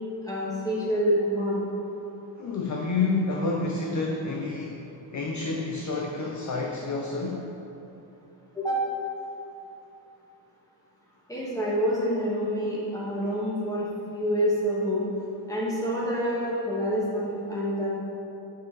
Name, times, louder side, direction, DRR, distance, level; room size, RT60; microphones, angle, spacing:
voice 1, 0.2-1.6 8.5-8.8 11.3-13.9 14.1-15.1 15.5-17.9, equal, 5° left, -7 dB, 1.6 m, -27 dB
voice 2, 2.4-7.5, left 3 dB, 40° left, 1 dB, 0.5 m, -29 dB
9.5 x 5.4 x 3.9 m, 2.9 s
wide cardioid pair, 160°, 48 cm